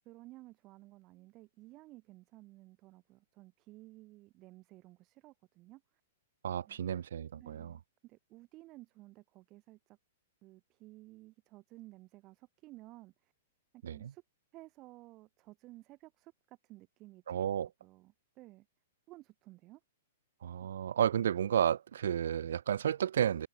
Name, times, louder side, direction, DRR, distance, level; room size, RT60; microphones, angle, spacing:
voice 1, 0.0-5.8 6.7-6.8 7.4-10.0 10.4-13.3 13.7-14.2 14.5-17.2 17.8-18.7 19.1-19.8, right 19 dB, 35° right, 4.9 m, -55 dB
voice 2, 6.4-7.8 13.8-14.1 17.3-17.7 20.4-23.5, right 9 dB, 75° right, 2.6 m, -32 dB
hypercardioid pair, 135°, 0 cm